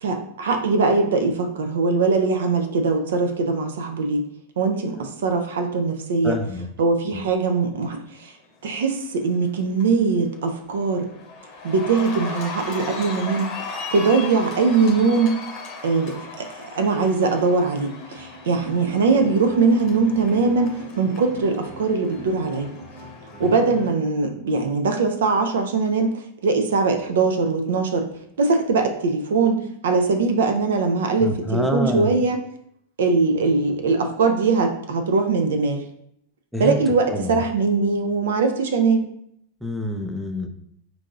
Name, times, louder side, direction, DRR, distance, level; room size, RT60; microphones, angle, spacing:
voice 1, 0.0-4.3 4.6-6.4 6.8-8.3 8.6-11.1 11.6-13.5 13.9-15.3 15.8-22.7 23.4-26.1 26.4-28.1 28.4-32.4 33.0-35.8 36.6-39.0, right 4 dB, 60° right, 6 dB, 0.4 m, -21 dB
voice 2, 6.2-6.7 7.1-7.3 23.3-23.5 31.2-32.2 36.5-36.8 37.1-37.4 39.6-40.5, left 1 dB, ahead, 4 dB, 0.4 m, -27 dB
Cheering, 9.0-9.4 9.8-23.9, left 3 dB, 35° left, 0.9 m, -37 dB
4.5 x 2.7 x 2.4 m, 0.74 s
figure-of-eight pair, 90°, 0 cm